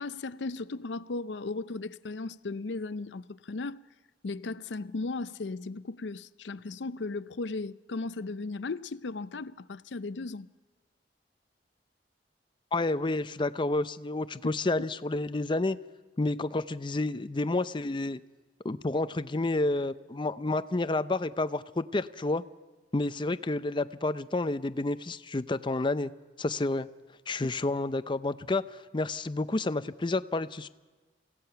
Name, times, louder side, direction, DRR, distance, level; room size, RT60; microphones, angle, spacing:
voice 1, 0.0-3.8 4.2-10.5, left 3 dB, 85° left, 0.6 m, -36 dB
voice 2, 12.7-15.8 16.2-18.2 18.6-22.4 22.9-26.1 26.4-26.9 27.3-30.7, left 2 dB, 25° left, 0.6 m, -30 dB
27.5 x 16.5 x 5.8 m
head